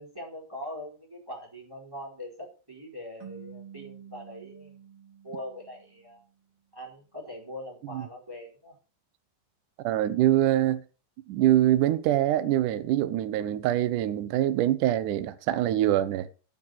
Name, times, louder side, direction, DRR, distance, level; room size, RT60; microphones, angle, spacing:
voice 1, 0.0-4.7 5.2-6.2 6.7-8.8, left 1 dB, 5° right, 4.1 m, -42 dB
sound 1, 3.2-6.4, right 8 dB, 60° right, 1.5 m, -49 dB
voice 2, 9.8-10.8 11.3-16.3, right 13 dB, 80° right, 1.8 m, -24 dB
9.2 x 8.9 x 6.5 m
omnidirectional pair, 5.0 m